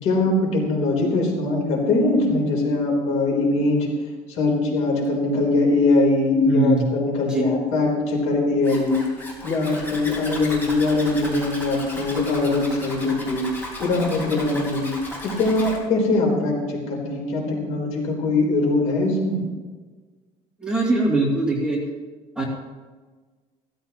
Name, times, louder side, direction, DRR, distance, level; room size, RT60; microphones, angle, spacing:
voice 1, 0.0-3.9 4.3-9.0 9.4-13.4 13.8-14.9 15.2-19.4, left 2 dB, 60° left, 0 dB, 3.7 m, -22 dB
voice 2, 6.5-6.9 7.2-7.5 20.6-21.8 22.4-22.5, right 2 dB, 5° right, -4 dB, 2.6 m, -21 dB
Zipper (clothing), 8.6-15.8, left 1 dB, 15° left, 3.8 m, -35 dB
16.0 x 14.0 x 3.0 m, 1.4 s
cardioid pair, 145°, 13 cm